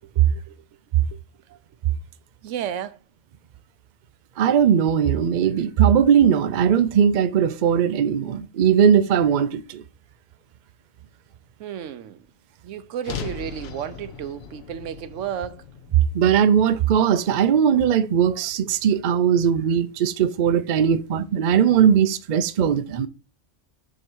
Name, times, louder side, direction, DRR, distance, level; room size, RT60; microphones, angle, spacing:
voice 1, 0.2-0.6 1.1-1.2 2.4-3.0 11.6-12.3 12.6-15.6 20.9-21.0 21.7-21.9, right 9 dB, 80° right, 1.0 m, -33 dB
voice 2, 4.4-9.8 16.1-23.1, right 8 dB, 55° right, 0.5 m, -19 dB
sound 1, 13.0-17.3, left 5 dB, 60° left, 0.9 m, -38 dB
7.4 x 2.9 x 6.0 m
omnidirectional pair, 1.3 m